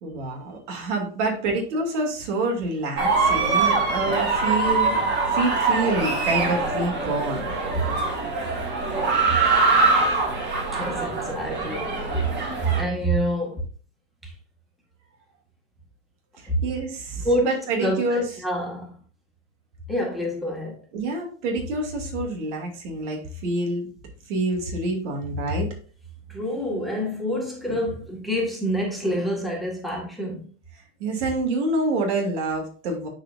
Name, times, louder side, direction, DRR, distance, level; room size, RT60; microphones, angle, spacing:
voice 1, 0.0-7.4 16.4-18.2 20.9-23.9 24.3-25.7 31.0-33.1, right 2 dB, 65° right, 2.6 m, -27 dB
sound 1, 3.0-12.8, right 3 dB, 30° right, 2.1 m, -23 dB
voice 2, 10.7-12.2 12.6-13.6 14.2-14.3 16.5-16.6 17.2-17.5 17.8-18.9 19.9-20.8 26.3-30.5, equal, ahead, 1.7 m, -27 dB
11.0 x 4.0 x 2.6 m
supercardioid pair, 125°, 37 cm